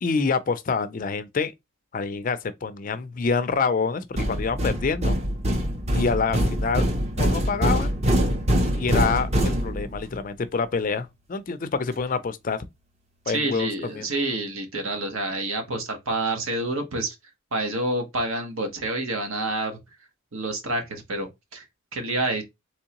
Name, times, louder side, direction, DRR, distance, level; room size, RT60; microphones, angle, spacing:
voice 1, 0.0-1.5 1.9-5.1 5.9-6.9 7.2-7.9 8.7-12.6 13.3-14.1, left 4 dB, 40° left, 0.4 m, -26 dB
sound 1, 4.2-10.2, equal, 30° right, 0.6 m, -24 dB
voice 2, 13.3-17.1 17.5-19.8 20.3-21.6 21.9-22.4, right 2 dB, 75° right, 1.1 m, -28 dB
3.6 x 3.1 x 2.9 m
head